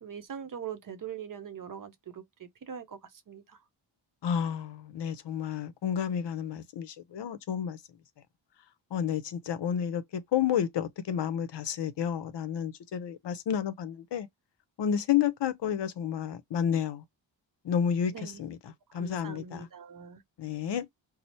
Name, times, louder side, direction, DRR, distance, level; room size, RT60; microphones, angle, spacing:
voice 1, 0.0-3.6 18.1-18.4 18.9-20.2, right 8 dB, 45° right, 0.6 m, -42 dB
voice 2, 4.2-7.8 8.9-14.3 14.8-17.0 17.6-18.6 18.9-19.7 20.4-20.8, left 8 dB, 65° left, 0.6 m, -30 dB
2.9 x 2.0 x 4.1 m
wide cardioid pair, 110°, 45 cm